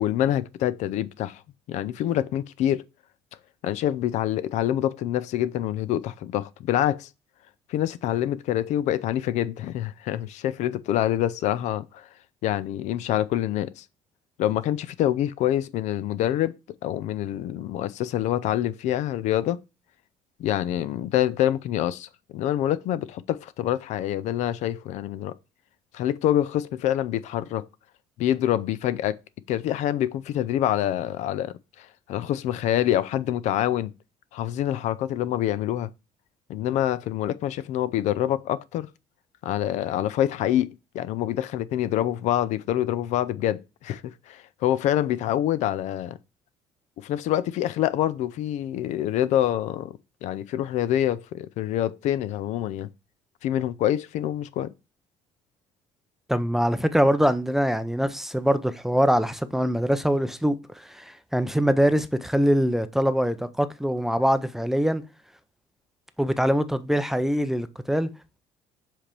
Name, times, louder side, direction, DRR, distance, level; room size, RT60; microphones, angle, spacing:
voice 1, 0.0-1.4 1.7-2.8 3.6-7.1 7.7-12.1 12.4-13.8 14.4-19.6 20.4-25.4 25.9-27.7 28.2-29.2 29.5-33.9 34.3-35.9 36.5-38.9 39.4-44.0 44.3-46.2 47.0-49.9 50.2-52.9 53.4-54.7, left 12 dB, 70° left, 0.5 m, -26 dB
voice 2, 56.3-65.0 66.2-68.1, equal, 5° right, 0.5 m, -23 dB
7.4 x 3.4 x 4.4 m
cardioid pair, 125°, 12 cm